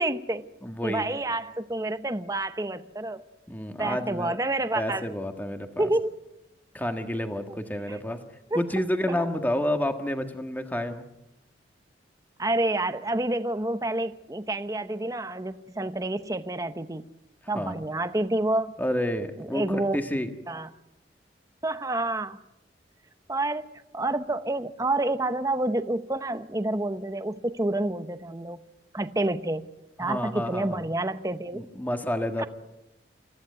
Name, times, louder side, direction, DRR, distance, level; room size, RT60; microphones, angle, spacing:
voice 1, 0.0-0.4 0.8-3.2 3.8-5.1 5.8-6.1 7.9-8.0 8.5-8.6 9.1-9.2 12.4-17.0 17.5-18.7 19.4-20.0 20.5-20.7 21.6-22.4 23.3-23.7 23.9-28.6 28.9-29.7 30.0-31.6 32.4-32.5, right 2 dB, 20° right, 0.8 m, -28 dB
voice 2, 0.6-1.0 3.5-4.4 4.7-5.9 6.7-8.2 8.5-11.1 17.5-17.8 18.8-20.3 30.0-30.9 31.5-32.5, left 1 dB, 10° left, 1.5 m, -29 dB
28.5 x 14.5 x 9.4 m
head